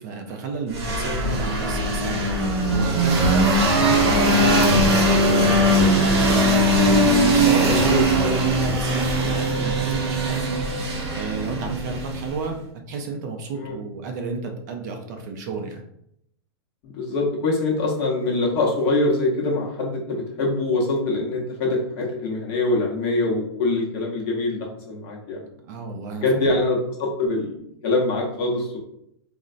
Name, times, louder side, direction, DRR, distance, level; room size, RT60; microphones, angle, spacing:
voice 1, 0.0-3.4 3.7-10.7 11.1-12.6 12.9-15.8 25.6-26.3, right 4 dB, 45° right, 3 dB, 0.4 m, -31 dB
sound 1, 0.7-12.5, right 1 dB, 80° right, 0.7 m, -20 dB
voice 2, 7.7-8.4 13.5-13.8 16.8-25.5 26.2-28.8, left 2 dB, 35° left, -2 dB, 0.7 m, -24 dB
3.9 x 2.1 x 2.4 m, 0.76 s
supercardioid pair, 165°, 14 cm